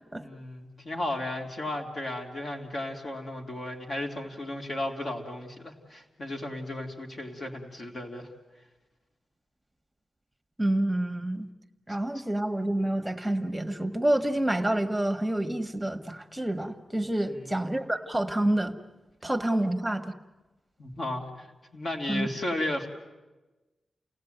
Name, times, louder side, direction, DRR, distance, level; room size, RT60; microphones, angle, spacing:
voice 1, 0.2-8.3 17.2-17.5 20.8-21.5 21.7-22.9, left 1 dB, 45° left, 2 dB, 3.0 m, -34 dB
voice 2, 10.6-11.5 11.9-18.8 19.2-20.1 22.1-22.3, right 1 dB, 5° right, 5 dB, 1.4 m, -28 dB
29.5 x 18.0 x 9.2 m, 1.1 s
wide cardioid pair, 145°, 0 cm